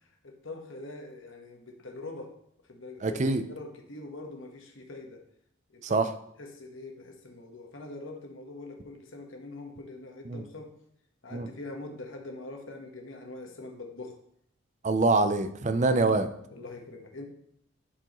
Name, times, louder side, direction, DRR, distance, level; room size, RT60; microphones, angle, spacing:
voice 1, 0.0-2.4 2.7-5.2 5.7-6.0 6.4-10.8 11.2-14.2 16.5-17.2, left 2 dB, 65° left, 3 dB, 1.2 m, -43 dB
voice 2, 3.0-3.4 5.8-6.1 10.3-10.4 11.3-11.5 14.8-16.3, right 3 dB, 35° right, 10 dB, 0.4 m, -25 dB
11.0 x 4.7 x 3.0 m, 0.73 s
head